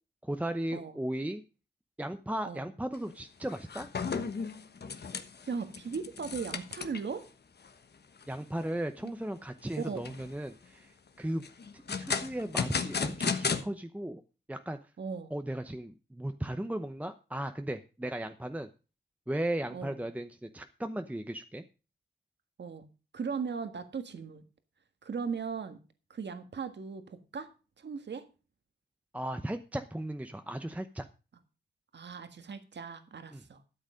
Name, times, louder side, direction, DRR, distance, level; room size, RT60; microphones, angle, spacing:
voice 1, 0.2-1.4 2.0-3.9 8.3-11.4 11.7-14.2 14.5-14.9 15.3-18.7 19.3-21.6 29.1-31.1 33.3-33.4, right 1 dB, 10° right, 8 dB, 0.8 m, -36 dB
sound 1, 2.9-3.1 3.4-7.2 7.6-7.7 8.2-8.3 8.8-9.2 9.7-10.4 11.4-13.6, left 5 dB, 60° left, 1.3 m, -34 dB
voice 2, 5.5-7.2 9.8-10.1 15.0-15.3 19.7-20.0 22.6-22.9 23.1-24.4 25.0-25.8 26.1-27.5 27.8-28.2 31.9-33.6, right 5 dB, 70° right, 8 dB, 1.6 m, -38 dB
13.0 x 8.1 x 5.1 m, 0.33 s
cardioid pair, 70°, 19 cm